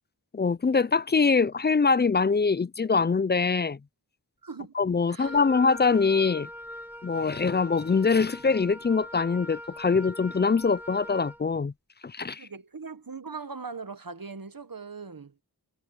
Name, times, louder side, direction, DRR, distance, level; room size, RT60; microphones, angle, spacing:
voice 1, 0.3-3.8 4.7-6.5 7.0-11.7 12.0-12.5, left 4 dB, 30° left, 0.3 m, -23 dB
voice 2, 4.4-4.7 5.1-5.4 12.4-15.3, right 4 dB, 55° right, 1.3 m, -40 dB
Wind instrument woodwind instrument, 5.2-11.4, equal, 5° right, 1.5 m, -42 dB
wide cardioid pair, 45°, 40 cm